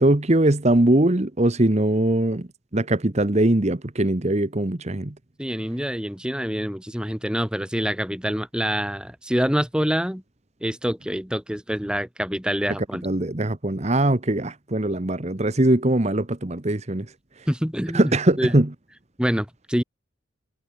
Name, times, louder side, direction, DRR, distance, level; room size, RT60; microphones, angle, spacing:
voice 1, 0.0-2.5 2.7-5.1 13.0-17.1 17.9-18.7, right 1 dB, 30° right, 1.1 m, -21 dB
voice 2, 5.4-10.2 10.6-13.0 17.5-18.6 19.2-19.8, equal, 5° right, 1.6 m, -26 dB
head